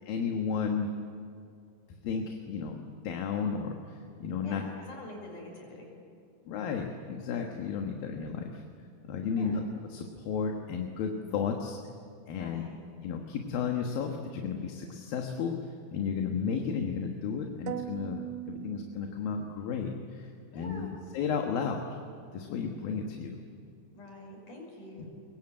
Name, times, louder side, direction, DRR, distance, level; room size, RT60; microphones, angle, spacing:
voice 1, 0.1-0.9 1.9-4.6 6.5-8.6 9.1-9.6 9.9-11.8 12.3-12.6 13.0-20.9 21.1-22.0 22.3-23.4, left 6 dB, 70° left, 3 dB, 3.1 m, -33 dB
voice 2, 4.4-5.8 9.3-9.6 12.4-12.8 20.5-21.0 23.9-25.1, left 1 dB, 50° left, 1 dB, 7.4 m, -46 dB
sound 1, 17.7-19.6, right 13 dB, 90° right, 2.9 m, -40 dB
24.5 x 22.5 x 9.0 m, 2.4 s
omnidirectional pair, 4.5 m